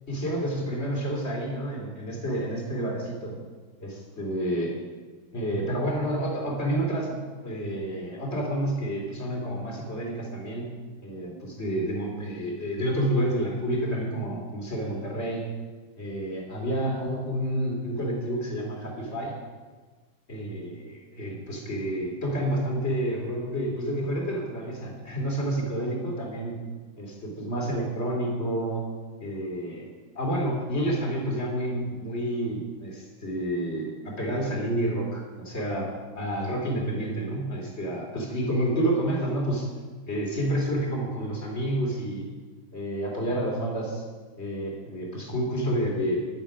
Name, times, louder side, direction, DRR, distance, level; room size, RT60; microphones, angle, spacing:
voice 1, 0.1-3.4 3.8-4.7 5.3-7.2 7.4-10.7 11.0-15.4 16.0-19.4 20.3-26.6 27.0-28.8 29.2-29.9 30.1-39.7 40.1-42.2 42.7-44.0 44.4-46.2, right 1 dB, 30° left, -1 dB, 3.2 m, -29 dB
13.5 x 11.0 x 5.1 m, 1.4 s
omnidirectional pair, 2.2 m